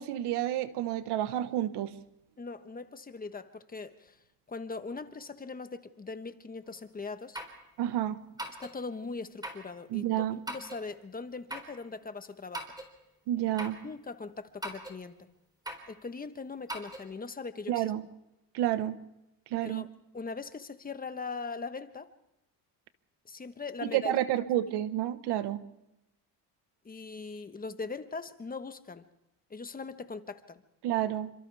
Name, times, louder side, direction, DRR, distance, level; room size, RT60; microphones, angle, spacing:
voice 1, 0.0-1.9 7.8-8.2 9.9-10.4 13.3-13.8 17.7-18.0 18.5-19.0 19.5-19.9 23.8-25.6 30.8-31.3, right 12 dB, 90° right, 11 dB, 1.4 m, -30 dB
voice 2, 2.4-4.2 4.5-7.4 8.6-12.7 13.8-15.2 15.9-17.9 19.6-19.9 20.1-22.1 23.2-24.2 26.8-29.0 29.5-30.6, left 4 dB, 20° left, 9 dB, 1.3 m, -40 dB
sound 1, 6.7-6.8 7.3-7.6 8.4-8.8 9.4-9.7 10.5-10.8 11.5-11.8 12.5-12.9 13.6-13.8 14.6-15.0 15.7-15.9 16.7-17.1, right 1 dB, 10° right, 3.9 m, -40 dB
29.0 x 26.0 x 3.5 m, 0.88 s
cardioid pair, 125°, 39 cm